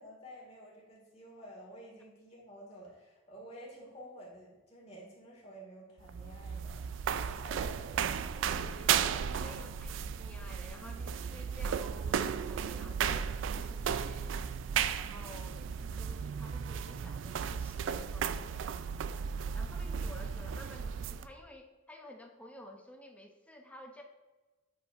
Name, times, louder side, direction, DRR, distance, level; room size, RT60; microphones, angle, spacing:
voice 1, 0.0-8.2, equal, 35° left, -4 dB, 2.0 m, -51 dB
sound 1, 6.0-21.3, right 7 dB, 75° right, 0.3 m, -35 dB
voice 2, 8.4-14.4 14.9-19.0 19.5-24.0, left 1 dB, 5° left, 2 dB, 0.6 m, -52 dB
7.9 x 4.8 x 2.5 m, 1.2 s
head